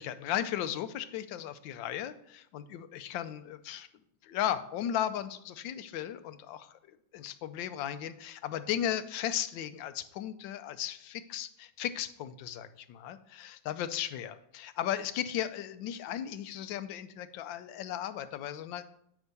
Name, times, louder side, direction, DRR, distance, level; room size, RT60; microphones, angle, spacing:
voice 1, 0.0-3.9 4.2-18.8, left 11 dB, 85° left, 12 dB, 1.3 m, -36 dB
9.5 x 3.6 x 6.6 m, 0.72 s
omnidirectional pair, 2.0 m